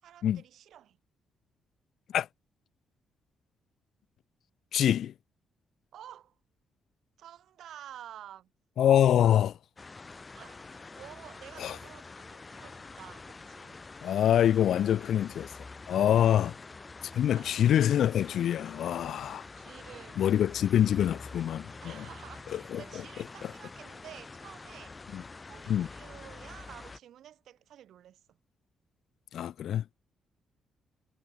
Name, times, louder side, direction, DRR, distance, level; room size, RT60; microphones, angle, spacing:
voice 1, 0.0-1.0 5.9-6.3 7.2-8.5 10.3-13.8 16.3-16.6 17.3-17.7 19.0-20.3 21.8-25.0 25.5-28.2, right 11 dB, 65° right, 4.3 m, -51 dB
voice 2, 4.7-5.1 8.8-9.6 11.6-11.8 14.0-15.5 15.9-16.5 17.1-19.4 20.2-22.0 22.5-22.8 25.1-25.2 25.7-25.9 29.3-29.9, left 10 dB, 60° left, 0.7 m, -25 dB
sound 1, 9.8-27.0, left 3 dB, 20° left, 3.9 m, -47 dB
cardioid pair, 165°, 0 cm